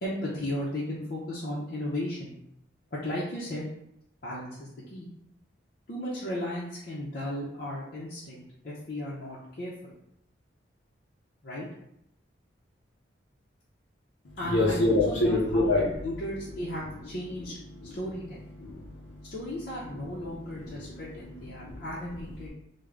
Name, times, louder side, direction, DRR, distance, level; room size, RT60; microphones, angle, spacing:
voice 1, 0.0-2.3 2.9-3.7 4.2-5.1 5.9-9.9 11.4-11.7 14.4-17.6 17.8-18.4 19.2-22.5, left 1 dB, 50° left, -7 dB, 0.6 m, -35 dB
voice 2, 14.3-15.9 17.8-17.9 18.6-19.3 20.0-21.8 22.4-22.5, left 2 dB, 85° left, -4 dB, 0.6 m, -28 dB
3.3 x 2.1 x 3.7 m, 0.78 s
head